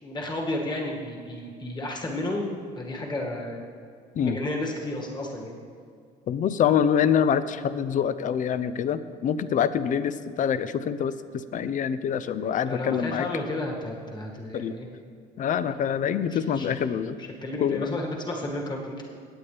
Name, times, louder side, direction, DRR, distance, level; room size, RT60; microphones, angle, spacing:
voice 1, 0.0-3.6 4.2-5.5 12.6-14.9 16.3-16.7 17.2-19.0, left 1 dB, 25° left, -1 dB, 2.0 m, -32 dB
voice 2, 6.3-13.2 14.5-14.8 15.4-17.2 17.6-18.0, left 8 dB, 50° left, 13 dB, 0.6 m, -25 dB
18.0 x 8.6 x 3.4 m, 2.2 s
cardioid pair, 110°, 17 cm